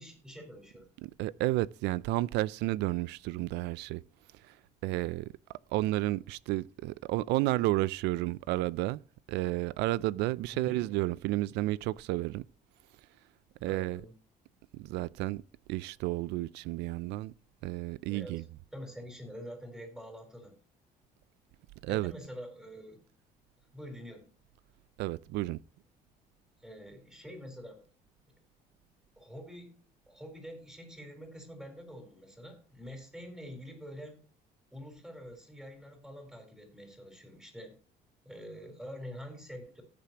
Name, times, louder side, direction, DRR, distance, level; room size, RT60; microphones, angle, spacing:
voice 1, 0.0-0.9 10.5-10.8 13.7-14.1 18.1-18.4 18.7-20.6 21.9-23.0 23.7-24.3 26.6-27.8 29.2-29.8 30.1-34.2 34.7-37.7 38.2-39.8, equal, 5° right, 4.3 m, -46 dB
voice 2, 1.0-4.0 4.4-4.6 4.8-5.3 5.7-9.0 9.3-12.4 13.6-14.0 14.7-15.4 15.7-17.3 17.6-18.4 21.8-22.1 25.0-25.6, right 17 dB, 90° right, 0.4 m, -31 dB
17.5 x 6.9 x 3.0 m
cardioid pair, 110°, 17 cm